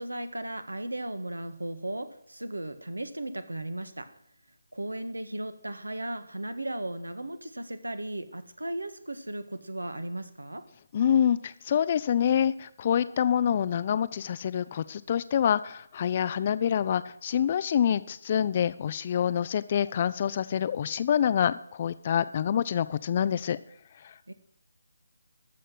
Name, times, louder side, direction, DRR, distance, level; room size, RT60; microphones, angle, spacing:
voice 1, 0.0-4.1 4.7-10.6 24.3-24.4, right 1 dB, 80° right, 10 dB, 1.6 m, -36 dB
voice 2, 10.9-23.6 24.0-24.3, left 9 dB, 30° left, 16 dB, 0.5 m, -26 dB
13.5 x 6.4 x 7.8 m, 0.71 s
figure-of-eight pair, 155°, 0 cm